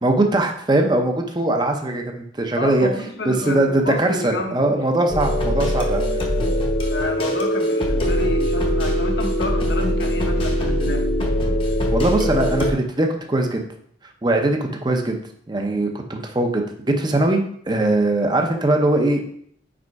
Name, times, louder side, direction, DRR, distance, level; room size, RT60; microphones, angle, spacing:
voice 1, 0.0-2.9 3.3-6.3 11.9-13.6 14.2-15.2 15.5-19.2, right 2 dB, 20° right, 3 dB, 0.6 m, -21 dB
voice 2, 2.6-4.8 6.9-11.1, left 2 dB, 60° left, 3 dB, 1.0 m, -30 dB
sound 1, 5.1-12.7, equal, 25° left, 0.8 m, -21 dB
5.0 x 4.2 x 4.7 m, 0.64 s
head